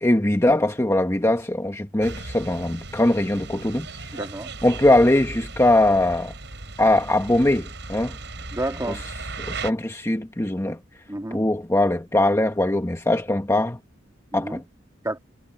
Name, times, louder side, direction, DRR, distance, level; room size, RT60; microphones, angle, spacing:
voice 1, 0.0-3.9 4.6-6.3 6.8-8.2 9.5-10.8 11.3-13.8 14.3-14.6, left 1 dB, 15° left, 1.3 m, -21 dB
sound 1, 2.0-9.7, right 3 dB, 65° right, 7.9 m, -37 dB
voice 2, 4.1-4.5 8.5-9.0 10.6-10.8 11.1-11.4 14.3-14.6 15.0-15.2, right 1 dB, 15° right, 2.9 m, -30 dB
head